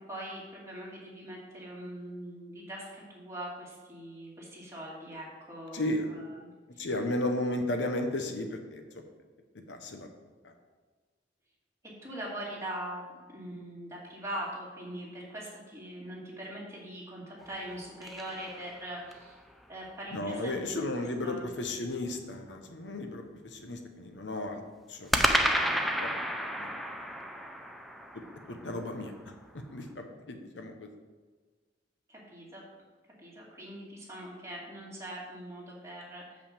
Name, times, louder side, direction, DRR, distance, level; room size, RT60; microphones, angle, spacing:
voice 1, 0.1-6.9 12.0-13.0 13.3-19.4 19.7-21.5 32.1-32.6 33.2-36.4, right 1 dB, 15° right, -5 dB, 2.6 m, -42 dB
voice 2, 5.7-6.1 6.8-9.0 9.7-10.1 10.4-10.5 20.1-24.6 24.9-25.1 25.5-26.1 26.6-26.7 28.5-29.1 29.7-30.9, left 1 dB, 75° left, 5 dB, 1.0 m, -34 dB
sound 1, 17.4-19.3 25.1-29.4, equal, ahead, 0.6 m, -32 dB
6.5 x 5.8 x 7.3 m, 1.4 s
head